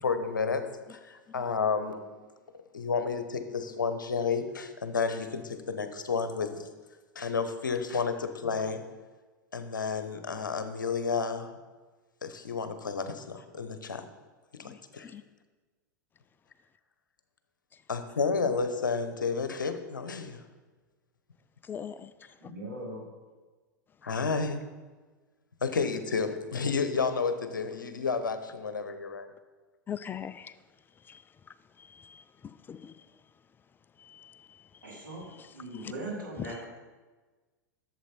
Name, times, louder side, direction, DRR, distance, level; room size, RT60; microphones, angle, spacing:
voice 1, 0.0-2.0 2.7-6.6 7.1-8.8 9.5-11.5 12.2-14.0 14.6-15.1 17.9-20.4 24.0-24.6 25.6-29.3, left 5 dB, 80° left, 9 dB, 0.9 m, -31 dB
voice 2, 21.6-22.5 29.9-30.5 31.1-31.2 31.8-32.9 34.0-35.1 35.4-35.5 35.7-35.9 36.4-36.5, left 8 dB, 20° left, 15 dB, 0.4 m, -42 dB
voice 3, 22.4-23.0 34.8-35.2 35.5-36.5, right 2 dB, 85° right, -5 dB, 3.3 m, -39 dB
11.0 x 7.4 x 4.4 m, 1.3 s
figure-of-eight pair, 90°, 10 cm